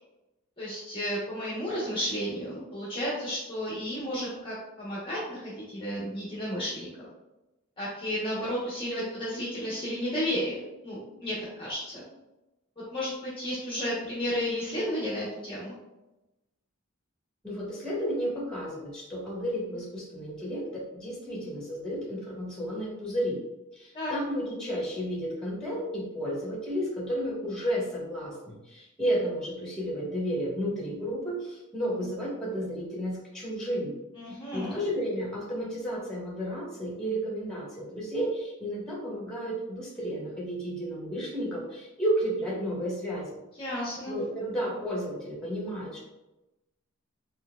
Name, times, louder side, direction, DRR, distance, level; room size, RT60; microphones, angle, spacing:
voice 1, 0.6-6.9 7.8-12.0 12.9-15.7 23.9-24.1 34.2-34.8 43.6-44.2, equal, 25° left, -7 dB, 1.0 m, -32 dB
voice 2, 17.4-23.4 23.7-33.9 34.3-43.3 44.1-46.0, equal, 5° left, -6 dB, 1.4 m, -32 dB
4.4 x 3.9 x 2.3 m, 0.99 s
head